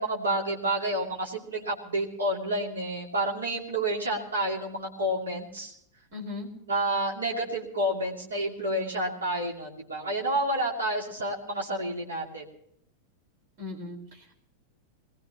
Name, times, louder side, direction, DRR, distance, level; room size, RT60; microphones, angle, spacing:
voice 1, 0.0-5.7 6.7-12.5, right 1 dB, 70° right, 0 dB, 2.7 m, -29 dB
voice 2, 6.1-6.5 13.6-14.3, left 3 dB, 50° right, 2 dB, 4.5 m, -38 dB
22.5 x 18.5 x 2.9 m, 0.68 s
figure-of-eight pair, 90°, 0 cm